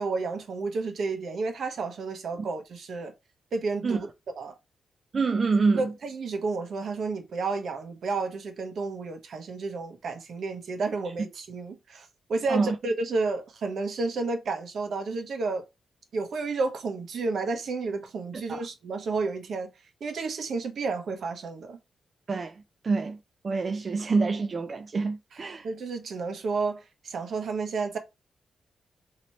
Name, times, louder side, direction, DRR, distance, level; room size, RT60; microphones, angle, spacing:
voice 1, 0.0-3.1 3.5-4.1 4.4-4.6 5.7-15.6 16.1-19.7 20.0-21.8 25.6-28.0, right 3 dB, 65° right, 1.1 m, -31 dB
voice 2, 5.1-5.9 12.5-12.8 18.3-18.7 22.3-23.2 23.4-25.7, right 4 dB, 40° right, 0.3 m, -27 dB
3.0 x 2.9 x 4.3 m
wide cardioid pair, 125°, 0 cm